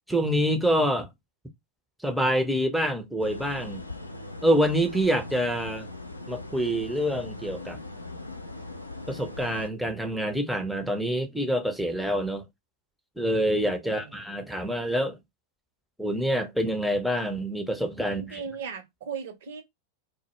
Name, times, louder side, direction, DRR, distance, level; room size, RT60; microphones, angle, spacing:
voice 1, 0.1-1.1 2.0-3.8 4.4-5.9 6.3-7.8 9.1-12.4 13.2-15.2 16.0-18.4, equal, ahead, 0.5 m, -26 dB
sound 1, 3.2-9.7, left 2 dB, 85° left, 0.3 m, -40 dB
voice 2, 13.8-14.2 18.1-19.6, right 6 dB, 55° right, 0.6 m, -38 dB
2.0 x 2.0 x 2.9 m
figure-of-eight pair, 90°, 0 cm